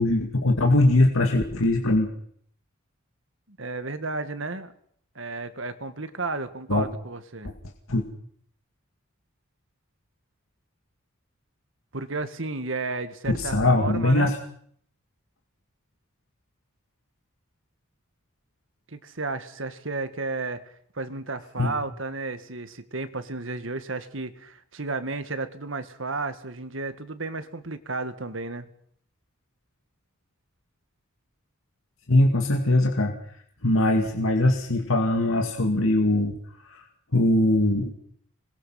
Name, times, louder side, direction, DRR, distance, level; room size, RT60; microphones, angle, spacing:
voice 1, 0.0-2.1 6.7-6.9 7.4-7.5 7.9-8.0 13.3-14.4 21.6-21.7 32.1-33.1 33.6-36.4 36.7-36.8 37.1-37.9, left 1 dB, 80° left, 3 dB, 2.4 m, -21 dB
voice 2, 3.5-4.7 5.2-7.5 11.9-14.3 18.9-20.6 20.9-28.7, right 3 dB, 70° right, 10 dB, 1.8 m, -33 dB
26.5 x 21.0 x 5.8 m, 0.63 s
head